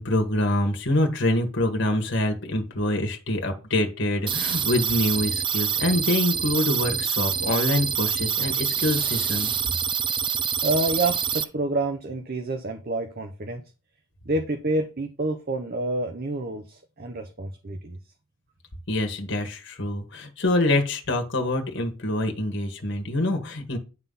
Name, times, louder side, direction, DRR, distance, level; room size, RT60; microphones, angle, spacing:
voice 1, 0.0-9.5 18.9-23.8, left 1 dB, 60° left, 4 dB, 1.6 m, -25 dB
sound 1, 4.3-11.4, right 8 dB, 25° right, 0.5 m, -26 dB
voice 2, 10.6-13.6 14.2-18.0, right 2 dB, 45° right, 5 dB, 0.9 m, -28 dB
10.5 x 3.8 x 5.6 m, 0.32 s
head